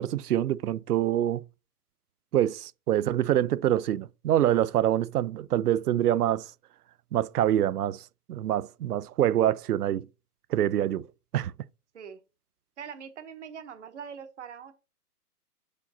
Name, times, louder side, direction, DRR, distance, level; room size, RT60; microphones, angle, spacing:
voice 1, 0.0-1.4 2.3-6.5 7.1-8.0 8.3-10.1 10.5-11.1 11.3-11.5, right 12 dB, 75° right, 0.5 m, -25 dB
voice 2, 12.8-14.7, right 7 dB, 50° right, 1.0 m, -42 dB
6.9 x 5.1 x 4.1 m
hypercardioid pair, 180°, 46 cm